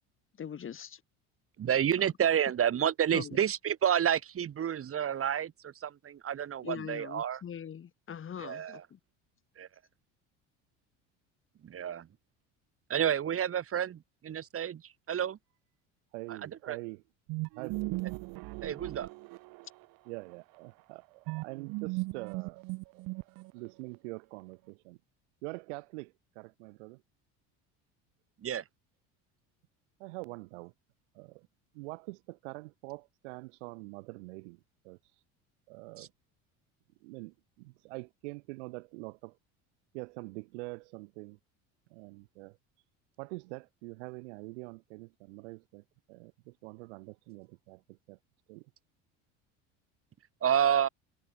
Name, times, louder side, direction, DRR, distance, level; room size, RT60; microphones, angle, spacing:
voice 1, 0.4-1.0 3.1-3.4 6.6-9.0, left 8 dB, 35° left, 7.1 m, -42 dB
voice 2, 1.6-7.4 8.4-8.8 9.6-9.7 11.6-12.1 12.9-14.8 15.1-15.4 16.7-16.8 18.6-19.1 28.4-28.6 36.0-36.1 50.4-50.9, right 9 dB, 40° right, 4.6 m, -29 dB
voice 3, 16.1-17.0 17.5-18.0 20.0-22.6 22.9-23.0 23.3-25.0 25.4-27.0 30.0-30.7 31.1-31.5 31.7-35.0 35.7-36.1 37.0-39.4 39.9-41.4 41.9-42.6 43.2-48.2 48.5-48.7, right 26 dB, 85° right, 6.4 m, -45 dB
sound 1, 17.3-19.8 21.3-23.7, right 25 dB, 70° right, 2.5 m, -37 dB
supercardioid pair, 105°, 34 cm